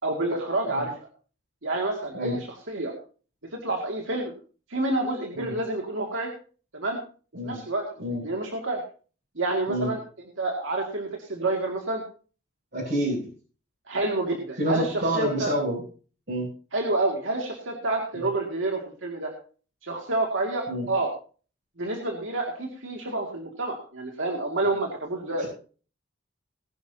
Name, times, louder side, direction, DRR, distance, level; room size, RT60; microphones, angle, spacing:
voice 1, 0.0-0.9 1.6-2.9 3.5-4.3 4.7-6.3 6.7-7.0 7.4-7.8 8.2-8.8 9.4-10.0 10.4-12.0 13.9-15.5 16.7-19.3 19.8-21.1 21.8-25.4, right 2 dB, 85° right, 0 dB, 2.5 m, -28 dB
voice 2, 12.7-13.2 14.6-15.8 16.3-16.5 20.7-20.9 25.4-25.5, equal, 60° right, -6 dB, 7.7 m, -27 dB
20.0 x 11.5 x 2.9 m, 0.39 s
head